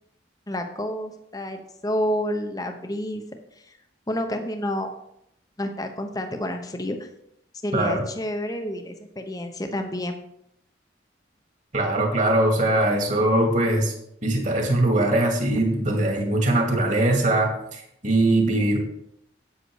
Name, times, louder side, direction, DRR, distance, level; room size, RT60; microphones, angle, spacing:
voice 1, 0.5-3.8 4.1-4.9 5.6-7.1 7.6-10.2, left 1 dB, 20° left, 6 dB, 0.9 m, -29 dB
voice 2, 7.7-8.0 11.7-13.9 14.2-18.8, right 1 dB, 40° right, 1 dB, 2.2 m, -21 dB
8.7 x 8.1 x 4.7 m, 0.77 s
head